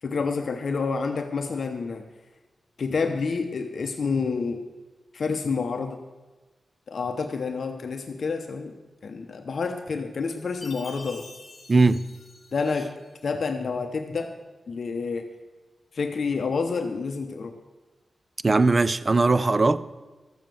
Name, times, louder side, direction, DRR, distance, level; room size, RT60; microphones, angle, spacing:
voice 1, 0.0-2.1 2.8-4.6 5.1-6.0 6.9-8.8 9.0-11.3 12.5-12.9 13.2-14.4 14.7-15.2 15.9-17.5, left 4 dB, 55° left, 0.7 m, -28 dB
Chime, 10.6-13.1, left 2 dB, 35° left, 1.8 m, -46 dB
voice 2, 11.7-12.0 18.4-20.0, right 3 dB, 25° right, 0.4 m, -20 dB
13.5 x 7.2 x 7.6 m
wide cardioid pair, 175°, 0 cm